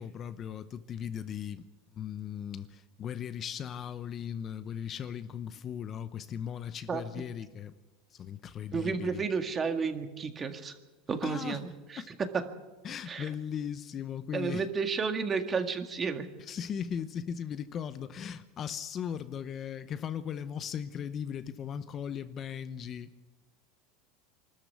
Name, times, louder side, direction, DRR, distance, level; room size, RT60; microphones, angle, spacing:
voice 1, 0.0-1.7 1.9-7.7 8.1-9.2 11.2-11.6 12.0-12.1 12.8-14.7 16.4-23.1, left 8 dB, 30° left, 0.8 m, -38 dB
voice 2, 8.7-10.7 11.1-12.0 12.3-12.4 13.1-13.3 14.3-16.3, right 5 dB, 25° right, 1.8 m, -32 dB
24.5 x 13.5 x 8.4 m
supercardioid pair, 135°, 0 cm